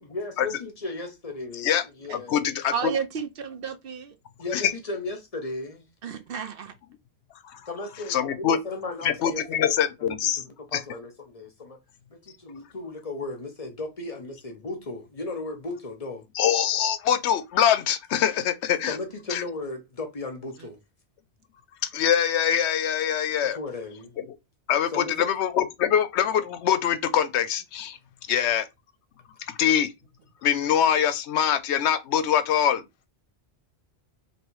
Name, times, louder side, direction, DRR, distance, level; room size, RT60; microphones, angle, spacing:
voice 1, 0.0-2.4 4.4-5.9 7.7-9.7 10.0-11.8 12.1-16.3 18.9-20.8 23.5-24.2 24.9-25.3, left 3 dB, 35° left, 0.9 m, -35 dB
voice 2, 2.1-2.9 4.5-4.7 7.4-7.6 8.1-8.6 9.0-10.4 10.7-10.8 16.3-19.0 19.3-19.4 21.9-23.6 24.7-28.0 28.3-28.7 29.5-29.9 30.4-32.8, left 9 dB, 85° left, 0.9 m, -24 dB
voice 3, 2.7-4.2 6.0-6.7 20.6-20.7, right 7 dB, 60° right, 0.8 m, -32 dB
3.1 x 3.0 x 4.6 m
omnidirectional pair, 1.1 m